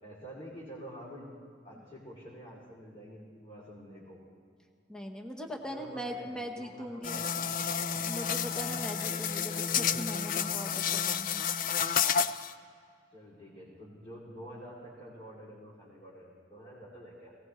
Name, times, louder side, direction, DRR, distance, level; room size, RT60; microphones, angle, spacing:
voice 1, 0.0-1.4 1.6-4.2 5.7-8.0 13.1-17.4, equal, 30° left, -7 dB, 2.9 m, -48 dB
voice 2, 4.9-7.2 8.0-11.4, equal, 5° left, 1 dB, 1.0 m, -40 dB
sound 1, 7.0-12.5, left 7 dB, 50° left, 0.4 m, -30 dB
19.0 x 18.0 x 3.1 m, 2.2 s
head